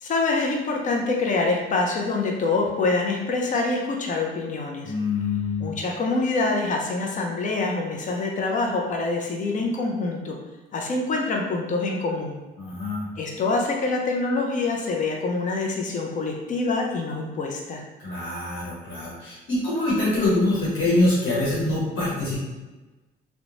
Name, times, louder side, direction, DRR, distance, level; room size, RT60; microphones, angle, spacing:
voice 1, 0.0-4.9 5.6-10.4 10.7-12.4 13.2-17.8, left 3 dB, 40° left, 1 dB, 0.5 m, -25 dB
voice 2, 4.8-5.7 12.6-13.1 18.0-22.4, left 2 dB, 75° left, -7 dB, 1.0 m, -24 dB
2.9 x 2.1 x 2.5 m, 1.1 s
cardioid pair, 90°, 20 cm